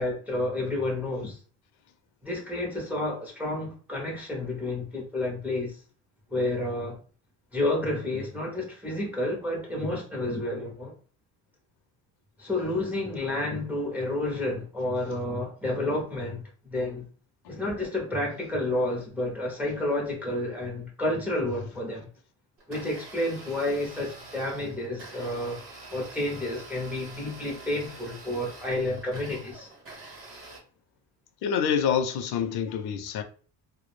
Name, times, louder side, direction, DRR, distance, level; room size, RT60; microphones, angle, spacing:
voice 1, 0.0-1.4 2.2-5.8 6.3-7.0 7.5-10.9 12.4-16.4 16.7-17.0 17.5-22.1 22.7-25.6 25.9-29.7, left 1 dB, 5° right, 0.4 m, -30 dB
Domestic sounds home sounds, 22.6-30.6, right 2 dB, 30° right, 0.8 m, -46 dB
voice 2, 31.4-33.2, left 7 dB, 65° left, 0.5 m, -26 dB
2.2 x 2.0 x 3.0 m
cardioid pair, 165°, 41 cm